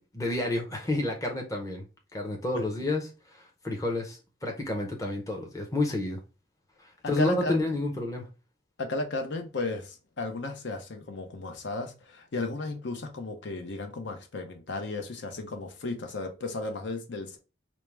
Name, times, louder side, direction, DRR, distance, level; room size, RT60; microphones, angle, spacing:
voice 1, 0.1-1.8 2.1-6.2 6.8-8.3, left 2 dB, 15° left, 0.6 m, -30 dB
voice 2, 7.0-7.7 8.8-17.4, left 2 dB, 75° left, 0.7 m, -34 dB
4.4 x 2.1 x 3.3 m
head